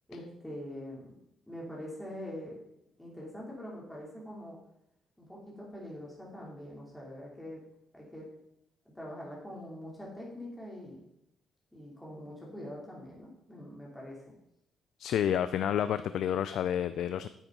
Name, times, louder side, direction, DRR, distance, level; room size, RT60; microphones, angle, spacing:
voice 1, 0.1-1.1 1.5-2.6 3.0-4.6 5.2-7.6 7.9-8.3 8.9-11.0 11.7-14.2, left 1 dB, 10° left, -4 dB, 2.8 m, -44 dB
voice 2, 15.0-17.3, left 9 dB, 75° left, 12 dB, 0.4 m, -29 dB
8.9 x 8.0 x 3.8 m, 0.78 s
cardioid pair, 90°, 0 cm